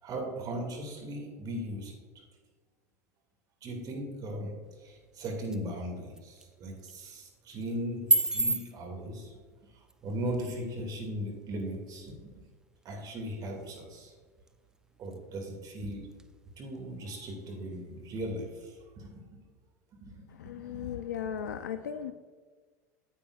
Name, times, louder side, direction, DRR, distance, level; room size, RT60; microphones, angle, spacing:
voice 1, 0.0-2.0 3.6-9.4 9.7-12.3 12.8-14.1 15.0-16.1 16.6-19.2 20.0-20.9, right 1 dB, 45° right, 2 dB, 2.3 m, -38 dB
sound 1, 4.6-18.7, right 2 dB, 5° right, 0.5 m, -38 dB
voice 2, 20.4-22.1, left 8 dB, 85° left, 10 dB, 0.3 m, -36 dB
9.8 x 8.5 x 2.4 m, 1.5 s
hypercardioid pair, 80°, 9 cm